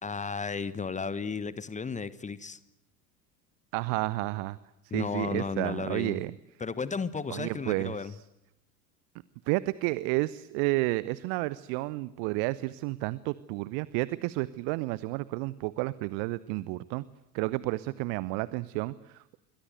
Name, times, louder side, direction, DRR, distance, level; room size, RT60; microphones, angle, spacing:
voice 1, 0.0-2.6 4.9-6.2 6.6-8.1, left 5 dB, 15° left, 17 dB, 1.2 m, -34 dB
voice 2, 3.7-4.6 4.9-6.3 7.3-8.2 9.5-17.0 17.3-19.4, right 20 dB, 45° right, 19 dB, 0.9 m, -31 dB
28.0 x 23.0 x 7.9 m, 0.83 s
figure-of-eight pair, 75°, 49 cm